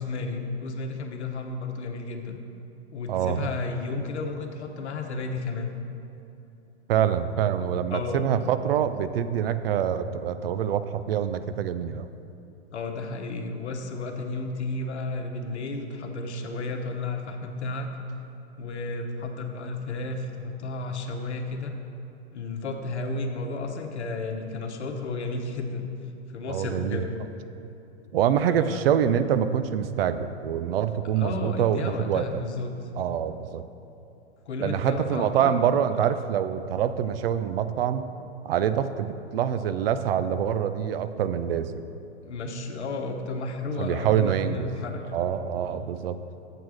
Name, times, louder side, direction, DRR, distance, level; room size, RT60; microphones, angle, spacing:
voice 1, 0.0-2.4 2.9-5.7 7.9-8.2 12.7-17.9 18.6-21.7 22.3-25.9 26.3-27.1 28.4-28.8 31.2-32.7 34.5-35.7 36.0-36.1 42.2-45.2 45.7-45.8, left 3 dB, 75° left, 4 dB, 1.0 m, -32 dB
voice 2, 3.1-3.5 6.9-12.1 26.5-27.1 28.1-32.4 33.0-33.7 34.6-38.0 38.4-41.8 43.8-44.7 45.1-46.2, right 9 dB, 60° right, 12 dB, 0.5 m, -25 dB
7.9 x 4.7 x 6.2 m, 2.8 s
hypercardioid pair, 105°, 34 cm